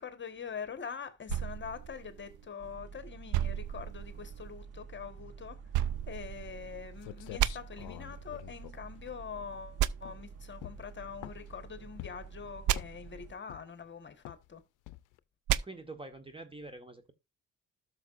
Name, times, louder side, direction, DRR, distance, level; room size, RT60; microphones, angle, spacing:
voice 1, 0.0-5.6 6.1-14.6, left 6 dB, 40° left, 1.3 m, -44 dB
sound 1, 1.3-2.7 3.3-4.5 5.7-6.9 7.4-7.5 9.8-9.9 12.7-12.8 15.5-15.6, right 11 dB, 75° right, 0.5 m, -32 dB
sound 2, 2.6-13.3, right 5 dB, 50° right, 1.2 m, -49 dB
sound 3, 6.7-6.8 7.0-9.6 10.0-10.3 10.6-11.6 12.0-12.4 12.7-13.1 13.5-13.9 14.3-14.5 14.9-15.2, left 17 dB, 90° left, 0.5 m, -47 dB
voice 2, 15.6-17.1, right 2 dB, 20° right, 1.3 m, -46 dB
13.0 x 6.4 x 2.5 m
cardioid pair, 90°, 30 cm